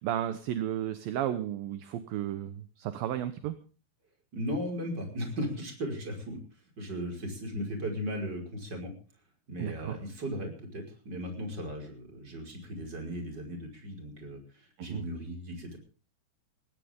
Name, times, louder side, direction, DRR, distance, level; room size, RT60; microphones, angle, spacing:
voice 1, 0.0-3.6 9.6-10.0 14.8-15.0, right 11 dB, 70° right, 11 dB, 2.5 m, -33 dB
voice 2, 4.3-6.4 6.8-8.9 9.5-15.8, equal, 25° right, 3 dB, 5.6 m, -37 dB
20.0 x 17.0 x 3.7 m, 0.37 s
omnidirectional pair, 5.0 m